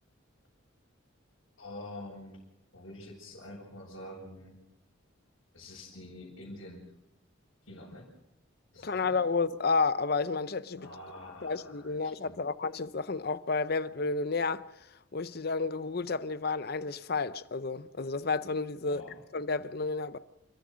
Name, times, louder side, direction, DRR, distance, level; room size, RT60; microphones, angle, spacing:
voice 1, 1.6-2.4 2.7-4.6 5.5-6.8 7.7-8.1 8.7-9.2 10.8-12.4 18.8-19.2, left 1 dB, 85° left, 6.5 m, -46 dB
voice 2, 8.8-10.9 11.4-14.6 15.1-19.0 19.3-20.2, left 4 dB, 50° left, 0.6 m, -31 dB
29.5 x 14.0 x 6.3 m
head